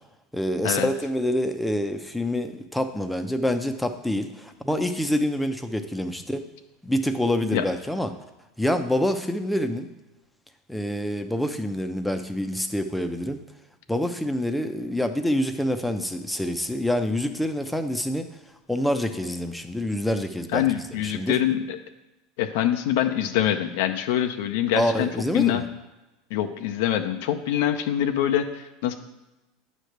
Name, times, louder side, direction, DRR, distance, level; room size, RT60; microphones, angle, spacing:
voice 1, 0.3-6.4 6.8-8.1 8.6-9.9 10.7-13.4 13.9-18.3 18.7-20.6 21.0-21.4 24.8-25.6, left 1 dB, 5° left, 7 dB, 0.7 m, -26 dB
voice 2, 20.5-21.8 22.4-25.6 26.3-28.9, left 11 dB, 75° left, 7 dB, 0.6 m, -25 dB
9.0 x 3.3 x 6.6 m, 1.0 s
hypercardioid pair, 100°, 0 cm